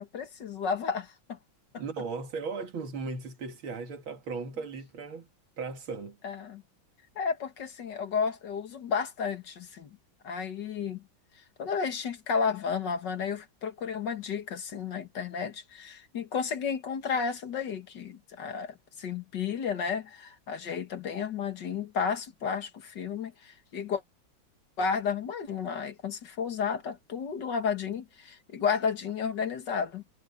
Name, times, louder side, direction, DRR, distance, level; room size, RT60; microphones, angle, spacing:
voice 1, 0.0-1.4 1.7-1.8 6.2-6.6 7.2-10.0 10.2-11.0 11.6-24.0 24.8-30.0, left 6 dB, 60° left, 2.2 m, -32 dB
voice 2, 1.8-5.3 5.6-6.2, right 4 dB, 85° right, 2.9 m, -37 dB
omnidirectional pair, 2.2 m